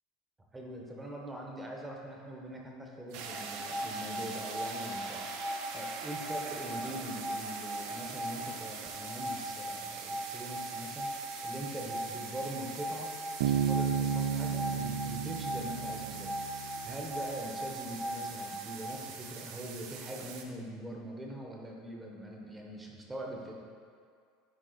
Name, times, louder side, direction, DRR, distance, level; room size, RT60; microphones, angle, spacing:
voice 1, 0.5-5.3 5.7-11.1 11.4-13.1 13.4-23.5, right 1 dB, 10° right, -1 dB, 1.0 m, -43 dB
sound 1, 3.1-20.4, right 6 dB, 65° right, 0.7 m, -44 dB
sound 2, 3.2-19.0, equal, 10° left, 0.4 m, -40 dB
Bass guitar, 13.4-17.0, right 8 dB, 85° right, 0.3 m, -32 dB
9.9 x 3.6 x 4.0 m, 2.1 s
supercardioid pair, 140°, 0 cm